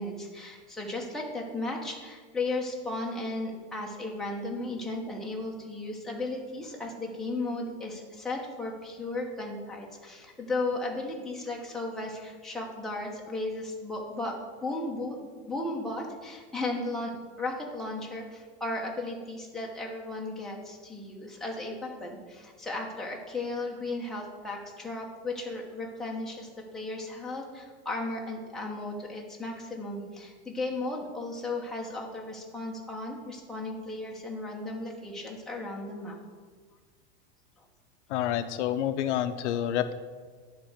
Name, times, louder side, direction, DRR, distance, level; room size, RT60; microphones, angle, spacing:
voice 1, 0.0-14.3 14.6-15.2 15.5-17.1 17.4-36.2 37.6-37.7, left 2 dB, ahead, -2 dB, 0.9 m, -35 dB
voice 2, 38.1-39.9, left 11 dB, 75° left, 11 dB, 0.6 m, -28 dB
9.7 x 3.6 x 6.4 m, 1.5 s
supercardioid pair, 155°, 35 cm